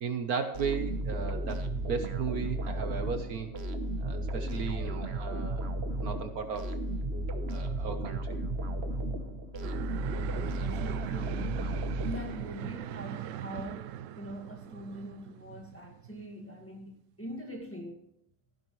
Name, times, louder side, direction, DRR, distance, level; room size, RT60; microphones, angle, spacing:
voice 1, 0.0-3.5 4.0-5.7 6.0-6.7 7.5-8.3, right 6 dB, 60° right, 1.4 m, -35 dB
sound 1, 0.5-12.7, right 1 dB, 45° right, 1.1 m, -34 dB
sound 2, 9.6-16.7, right 11 dB, 85° right, 0.6 m, -40 dB
voice 2, 10.5-18.0, equal, 10° left, 1.6 m, -43 dB
15.0 x 11.0 x 3.1 m
omnidirectional pair, 1.9 m